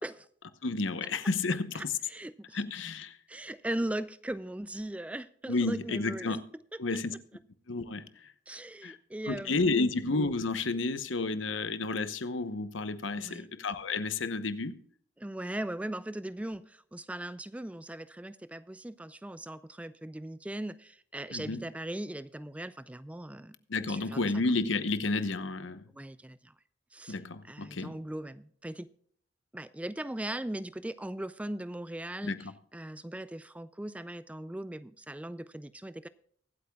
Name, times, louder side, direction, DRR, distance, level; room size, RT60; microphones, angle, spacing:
voice 1, 0.6-1.9 2.5-3.2 5.5-6.4 6.8-7.1 7.7-8.0 8.8-9.0 9.3-14.8 21.3-21.6 23.7-25.8 27.1-28.0 32.2-32.5, left 3 dB, 80° left, 0.9 m, -31 dB
voice 2, 1.7-2.6 3.3-6.4 8.5-9.8 13.2-13.5 15.2-23.5 23.9-24.3 25.9-26.5 26.9-27.2 27.4-28.9 29.5-36.1, right 1 dB, 5° right, 0.3 m, -39 dB
23.5 x 8.5 x 2.3 m
head